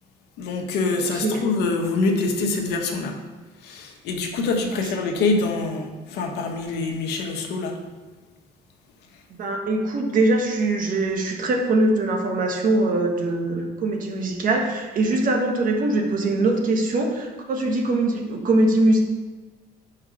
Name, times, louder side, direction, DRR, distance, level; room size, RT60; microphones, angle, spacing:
voice 1, 0.4-3.2 3.6-7.8, left 3 dB, 85° left, 2 dB, 1.2 m, -25 dB
voice 2, 1.0-1.4 4.7-4.8 9.4-19.0, right 2 dB, 55° right, 2 dB, 1.4 m, -22 dB
5.4 x 4.9 x 6.2 m, 1.3 s
cardioid pair, 110°, 17 cm